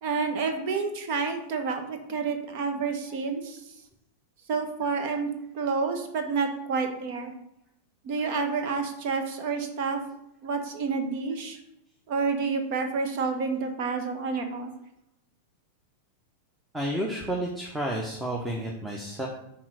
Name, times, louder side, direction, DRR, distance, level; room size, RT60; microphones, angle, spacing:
voice 1, 0.0-3.6 4.5-5.3 5.5-7.3 8.0-10.0 10.4-11.6 12.1-14.7, right 4 dB, 50° right, 6 dB, 1.1 m, -29 dB
voice 2, 16.7-19.3, right 1 dB, 5° right, -1 dB, 1.0 m, -31 dB
6.0 x 4.3 x 6.1 m, 0.80 s
figure-of-eight pair, 90°, 0 cm